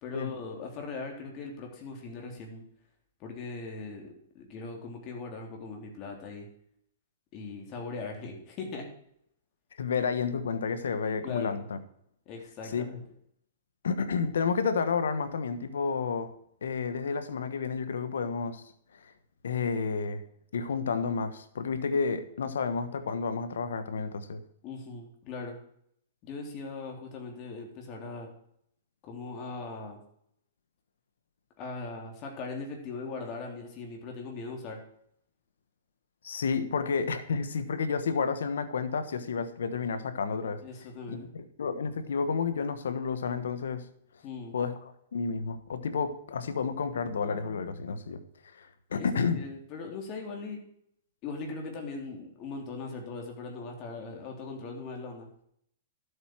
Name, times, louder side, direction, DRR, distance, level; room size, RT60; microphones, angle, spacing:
voice 1, 0.0-2.6 3.2-6.5 7.3-8.9 11.2-11.6 12.3-13.0 24.6-25.6 26.2-28.3 29.0-30.0 31.6-34.8 40.6-41.3 44.2-44.6 49.0-50.6 51.2-55.3, left 4 dB, 35° left, 2 dB, 3.4 m, -40 dB
voice 2, 9.8-11.8 12.7-12.9 13.8-16.3 16.6-18.6 19.4-20.2 20.5-24.4 36.2-40.6 41.1-41.2 41.6-43.8 44.5-48.2 48.5-49.4, left 5 dB, 90° left, 11 dB, 1.3 m, -30 dB
12.5 x 8.1 x 4.7 m, 0.70 s
hypercardioid pair, 140°, 0 cm